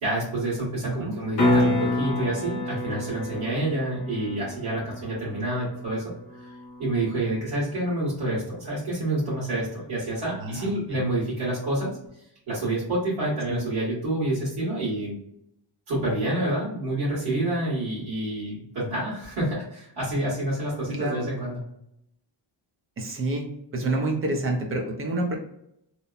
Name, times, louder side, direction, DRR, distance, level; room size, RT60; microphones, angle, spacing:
voice 1, 0.0-6.1 6.8-11.9 12.5-15.1 15.9-21.6, right 1 dB, 55° right, -10 dB, 1.4 m, -28 dB
voice 2, 0.8-1.1 10.4-11.0 13.5-13.6 20.9-21.3 23.0-23.5 23.7-25.3, right 2 dB, 30° right, 1 dB, 0.4 m, -28 dB
sound 1, 1.4-7.4 12.1-12.2, left 1 dB, 60° left, 0.8 m, -28 dB
2.8 x 2.0 x 2.3 m, 0.76 s
wide cardioid pair, 170°, 49 cm